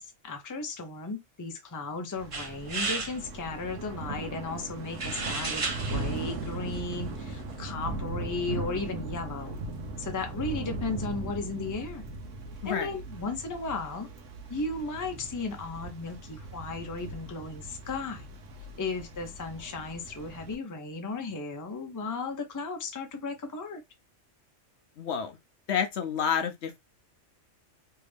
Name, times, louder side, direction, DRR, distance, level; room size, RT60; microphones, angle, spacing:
voice 1, 0.0-9.6 10.0-12.0 12.6-14.1 14.5-18.3 18.8-23.8, left 3 dB, 20° left, 0.5 m, -35 dB
Thunder / Rain, 2.2-20.6, right 2 dB, 80° right, 1.2 m, -39 dB
sound 1, 2.3-7.7, right 3 dB, 30° right, 0.7 m, -37 dB
voice 2, 25.0-25.4 25.7-26.8, left 7 dB, 65° left, 0.9 m, -29 dB
3.4 x 2.7 x 3.3 m
omnidirectional pair, 1.3 m